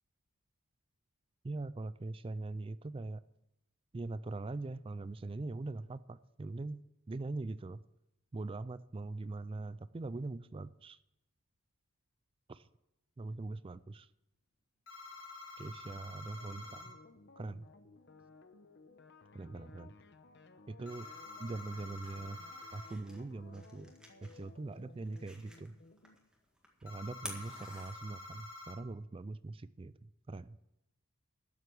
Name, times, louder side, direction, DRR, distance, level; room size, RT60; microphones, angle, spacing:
voice 1, 1.4-3.2 3.9-7.8 8.3-11.0 12.5-12.7 13.2-14.1 15.6-16.9 17.4-17.7 19.3-19.9 20.7-21.1 21.4-22.4 22.7-23.9 24.2-25.8 26.8-30.6, right 2 dB, 25° right, 16 dB, 0.3 m, -42 dB
sound 1, 14.9-16.9 20.9-22.9 26.9-28.8, left 2 dB, 80° left, 3.1 m, -49 dB
sound 2, 16.3-26.2, left 3 dB, 50° left, 0.9 m, -58 dB
sound 3, 21.6-28.5, right 1 dB, 5° right, 1.7 m, -53 dB
12.5 x 7.9 x 7.0 m, 0.90 s
head